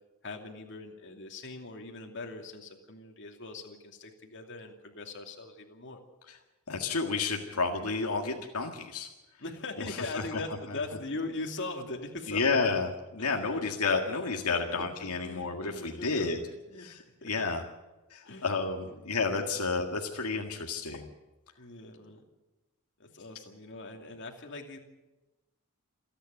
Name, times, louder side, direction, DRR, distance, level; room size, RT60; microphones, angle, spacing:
voice 1, 0.2-6.0 9.4-12.6 13.2-13.6 14.7-16.9 17.2-17.3 18.2-19.4 21.6-22.2 23.0-24.8, left 2 dB, 55° left, 3 dB, 2.6 m, -41 dB
voice 2, 6.7-9.1 10.1-10.4 12.3-12.9 13.1-16.4 16.8-17.0 17.2-17.6 18.1-21.1, left 4 dB, 85° left, 2 dB, 1.9 m, -30 dB
28.0 x 10.0 x 9.3 m, 1.1 s
head